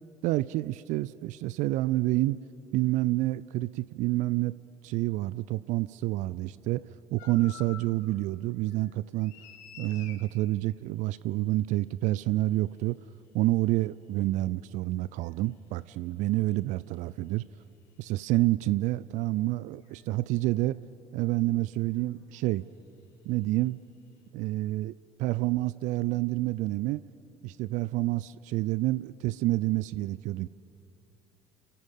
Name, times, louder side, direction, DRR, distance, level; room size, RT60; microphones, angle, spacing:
voice 1, 0.2-2.4 2.7-9.4 9.8-13.0 13.3-17.4 18.0-20.8 21.1-22.7 23.3-23.8 24.3-24.9 25.2-27.0 27.4-30.5, right 17 dB, 65° right, 0.4 m, -28 dB
sound 1, 7.2-8.1 8.5-10.3 12.3-12.4 15.2-15.3 18.1-18.2 19.9-20.0 21.8-22.0 22.3-22.5, left 9 dB, 70° left, 1.9 m, -49 dB
29.0 x 13.5 x 8.3 m
hypercardioid pair, 55°, 14 cm